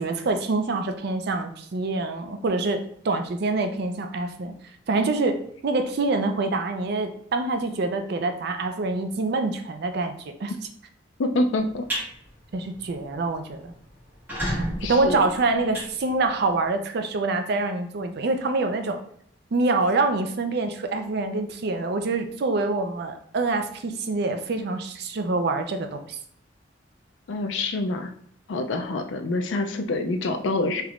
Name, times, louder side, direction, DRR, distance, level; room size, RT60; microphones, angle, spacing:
voice 1, 0.0-4.5 4.9-5.4 5.6-10.5 12.5-13.7 14.9-19.0 19.5-26.2, right 3 dB, 60° right, 6 dB, 0.4 m, -26 dB
voice 2, 11.2-11.9 14.8-15.2 27.3-28.1 28.5-30.8, left 2 dB, 75° left, 5 dB, 0.4 m, -26 dB
sound 1, 11.6-12.1 12.5-12.8 13.1-13.2 13.4-13.5 14.1-16.6, equal, 10° right, 1.4 m, -31 dB
3.3 x 3.0 x 2.4 m, 0.64 s
head